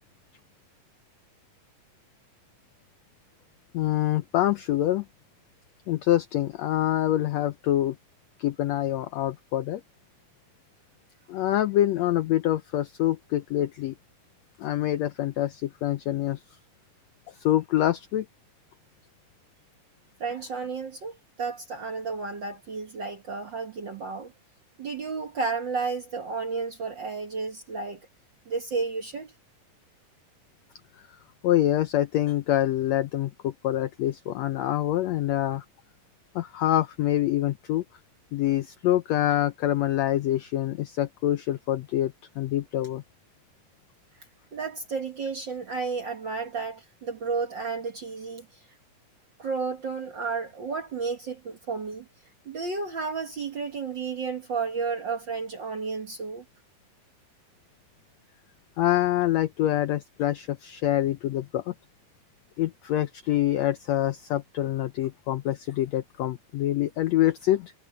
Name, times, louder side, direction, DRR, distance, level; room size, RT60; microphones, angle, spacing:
voice 1, 3.7-5.0 5.9-8.0 8.4-9.8 11.3-13.9 14.6-16.4 17.4-18.3 31.4-35.6 36.3-37.8 38.3-43.0 58.8-61.7 62.6-67.7, left 13 dB, 90° left, 1.5 m, -25 dB
voice 2, 20.2-24.3 24.8-28.1 28.5-29.3 44.5-48.4 49.4-52.0 52.4-56.4, right 4 dB, 50° right, 1.5 m, -32 dB
omnidirectional pair, 3.9 m